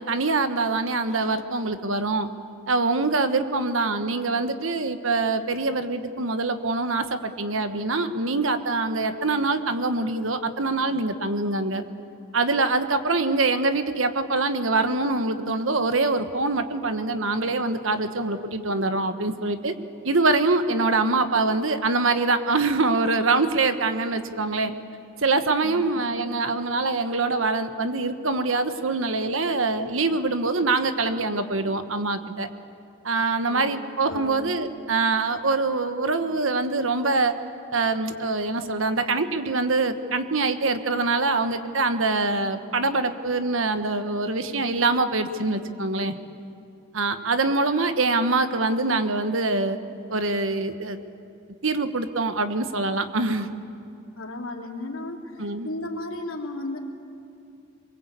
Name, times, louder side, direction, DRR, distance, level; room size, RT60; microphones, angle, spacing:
voice 1, 0.0-2.3 2.7-11.8 12.3-19.7 20.0-24.7 25.2-32.5 33.0-37.3 37.7-46.1 46.9-49.8 50.1-51.0 51.6-53.5 55.4-55.7, right 3 dB, 70° right, 9 dB, 1.4 m, -24 dB
voice 2, 25.6-26.1 33.5-33.7 34.0-34.4 54.2-56.8, left 2 dB, 85° left, 1 dB, 3.1 m, -34 dB
25.0 x 23.0 x 8.4 m, 2.7 s
head